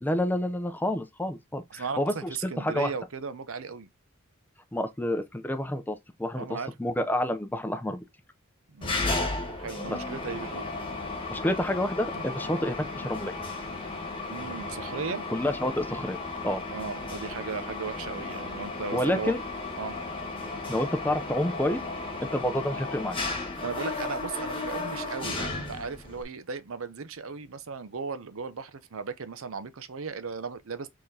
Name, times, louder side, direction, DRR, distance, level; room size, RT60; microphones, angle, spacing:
voice 1, 0.0-2.9 4.7-8.0 9.9-10.0 11.3-13.3 15.3-16.2 16.4-16.6 18.9-19.4 20.7-21.8 22.3-23.2, left 1 dB, 10° left, 0.5 m, -29 dB
voice 2, 1.7-3.9 6.3-6.7 8.7-9.0 9.6-10.7 12.1-12.2 14.3-15.2 16.7-19.3 19.8-20.0 23.6-30.9, right 5 dB, 70° right, 0.7 m, -36 dB
Mechanisms, 8.8-26.2, left 3 dB, 25° left, 1.6 m, -34 dB
4.9 x 3.7 x 2.8 m
head